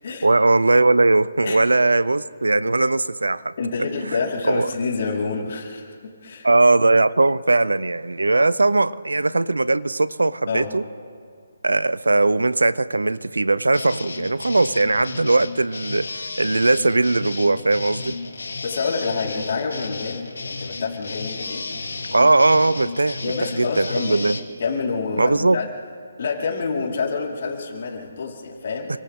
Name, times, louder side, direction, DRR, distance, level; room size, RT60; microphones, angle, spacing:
voice 1, 0.2-3.5 4.4-4.7 6.4-10.8 11.6-18.1 22.1-23.3 23.6-24.3 25.2-25.6, right 2 dB, 85° right, 17 dB, 0.7 m, -19 dB
voice 2, 3.6-6.5 10.5-10.7 18.0-18.1 18.4-21.7 23.2-24.2 24.6-25.7 26.2-28.9, left 4 dB, 50° left, -2 dB, 4.7 m, -28 dB
sound 1, 13.7-24.4, left 3 dB, 75° left, 2.3 m, -33 dB
29.0 x 25.0 x 3.8 m, 2.1 s
figure-of-eight pair, 150°, 0 cm